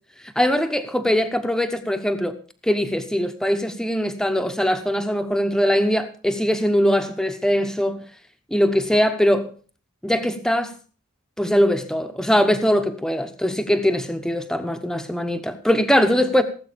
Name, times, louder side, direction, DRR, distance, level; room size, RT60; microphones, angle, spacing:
voice 1, 0.4-2.3 2.6-8.0 8.5-9.5 10.0-10.7 11.4-16.4, equal, 5° left, 1.0 m, -21 dB
17.5 x 8.0 x 5.1 m
head